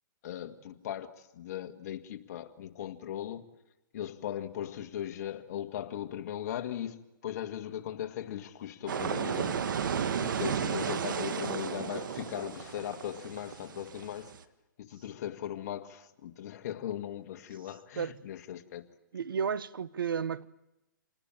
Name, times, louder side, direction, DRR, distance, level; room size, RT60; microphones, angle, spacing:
voice 1, 0.2-3.5 3.9-9.7 10.2-14.3 14.8-18.9, left 10 dB, 50° left, 1.7 m, -38 dB
sound 1, 8.9-14.4, right 7 dB, 70° right, 1.5 m, -33 dB
voice 2, 19.1-20.5, right 7 dB, 85° right, 0.9 m, -32 dB
27.0 x 19.5 x 8.9 m
hypercardioid pair, 150°, 11 cm